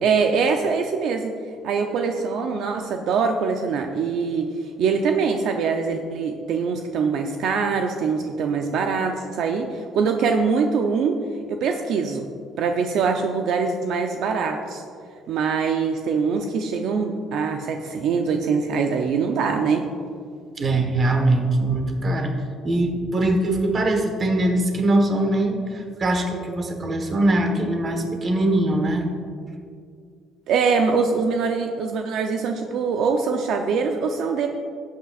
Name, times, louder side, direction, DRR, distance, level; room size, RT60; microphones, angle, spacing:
voice 1, 0.0-1.3 1.6-4.5 4.8-11.2 11.5-12.3 12.6-14.8 15.3-19.8 30.5-34.5, right 5 dB, 65° right, 4 dB, 0.6 m, -23 dB
voice 2, 20.6-29.1, right 1 dB, 30° right, 4 dB, 1.3 m, -22 dB
17.0 x 8.4 x 2.5 m, 2.2 s
cardioid pair, 145°, 0 cm